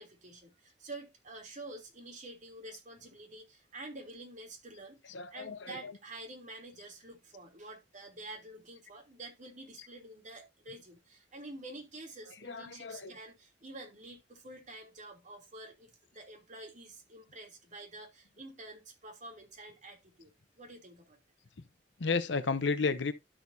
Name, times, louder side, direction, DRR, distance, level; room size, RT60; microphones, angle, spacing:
voice 1, 0.0-21.2, right 2 dB, 45° right, 3.0 m, -48 dB
voice 2, 5.1-5.9 12.4-13.1 22.0-23.1, left 4 dB, 70° left, 0.8 m, -33 dB
12.0 x 6.4 x 2.7 m
head